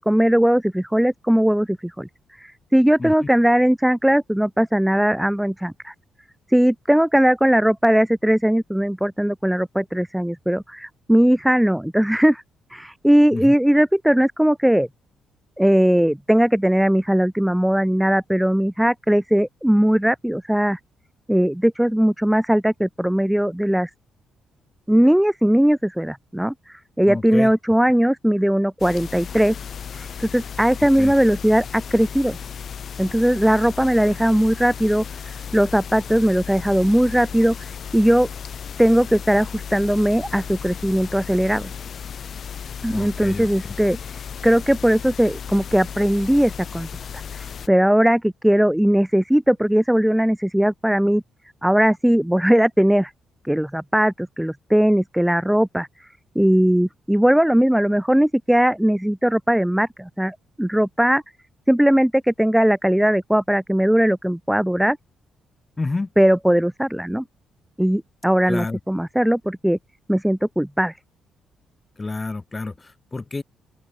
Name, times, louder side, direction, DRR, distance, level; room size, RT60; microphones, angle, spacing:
voice 1, 0.0-2.1 2.4-5.9 6.5-12.4 12.7-14.9 15.6-20.8 21.3-23.9 24.9-26.5 27.0-29.5 29.9-32.4 33.0-35.0 35.5-38.3 38.8-41.7 42.8-44.0 44.4-46.9 47.3-51.2 51.6-53.1 53.4-55.9 56.4-61.2 61.7-65.0 66.2-67.2 67.8-69.8 70.1-70.9, equal, 5° right, 0.5 m, -19 dB
voice 2, 27.1-27.5 31.0-31.1 42.9-43.5 65.8-66.1 68.5-68.8 72.0-73.4, left 3 dB, 20° left, 3.5 m, -29 dB
sound 1, 28.8-47.7, left 7 dB, 55° left, 6.7 m, -35 dB
open air
cardioid pair, 90°, 0 cm